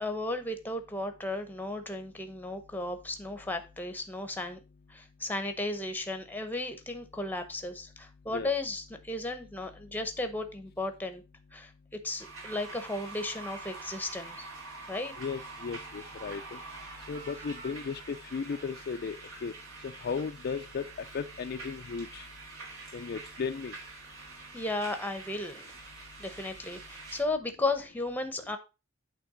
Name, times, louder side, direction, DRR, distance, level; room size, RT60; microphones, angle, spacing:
voice 1, 0.0-4.6 4.9-11.2 11.5-11.7 12.0-14.4 14.9-15.1 24.5-25.6 26.2-28.6, left 2 dB, 10° left, 8 dB, 0.8 m, -34 dB
sound 1, 12.2-27.2, right 3 dB, 65° right, 2.8 m, -46 dB
voice 2, 15.2-16.6 17.1-19.5 19.8-20.9 21.1-22.3 22.9-23.7, left 5 dB, 45° left, 8 dB, 0.4 m, -35 dB
8.4 x 3.4 x 4.9 m, 0.29 s
head